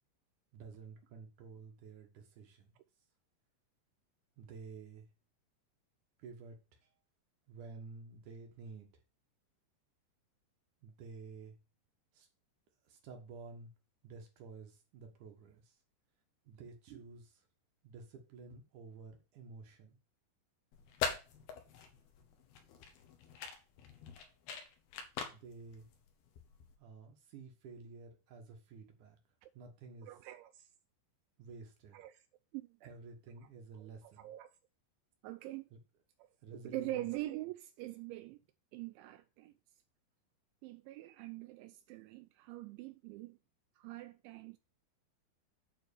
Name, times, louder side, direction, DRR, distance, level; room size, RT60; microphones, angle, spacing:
voice 1, 0.5-2.8 4.4-5.1 6.2-6.9 7.5-8.9 10.8-11.6 12.1-12.3 12.9-13.7 14.0-15.8 16.4-17.5 17.8-20.0 25.2-25.9 26.8-29.2 29.5-30.1 31.4-32.0 32.8-34.3 35.7-35.8 36.4-37.1, right 4 dB, 65° right, 2.0 m, -51 dB
sound 1, 20.7-26.8, left 6 dB, 65° left, 3.0 m, -43 dB
voice 2, 30.0-30.7 31.9-32.2 32.5-32.8 33.8-33.9 34.2-34.5 35.2-35.7 36.2-36.3 36.6-38.4 38.7-39.5 40.6-43.4 43.8-44.6, right 16 dB, 85° right, 2.8 m, -44 dB
9.1 x 4.0 x 6.9 m
omnidirectional pair, 5.4 m